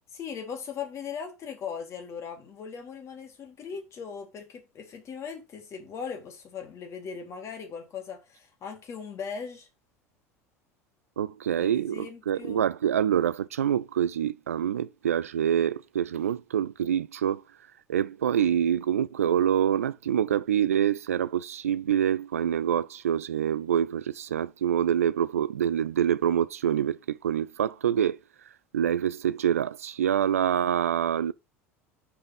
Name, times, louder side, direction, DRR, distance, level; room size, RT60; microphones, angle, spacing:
voice 1, 0.1-9.7 11.6-12.7, left 6 dB, 40° left, 2.2 m, -39 dB
voice 2, 11.2-17.4 17.9-28.2 28.7-31.3, right 9 dB, 75° right, 0.5 m, -26 dB
5.6 x 5.0 x 5.5 m
figure-of-eight pair, 75°, 8 cm